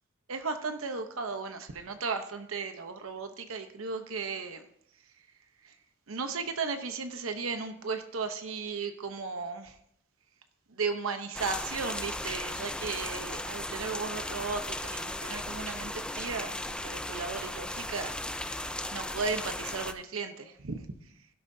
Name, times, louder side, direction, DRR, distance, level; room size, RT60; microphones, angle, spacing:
voice 1, 0.3-4.6 5.1-5.3 5.6-5.8 6.1-9.8 10.7-21.3, right 4 dB, 85° right, 7 dB, 0.9 m, -36 dB
sound 1, 11.3-19.9, left 1 dB, 5° left, 0.4 m, -36 dB
16.5 x 12.0 x 2.7 m, 0.72 s
head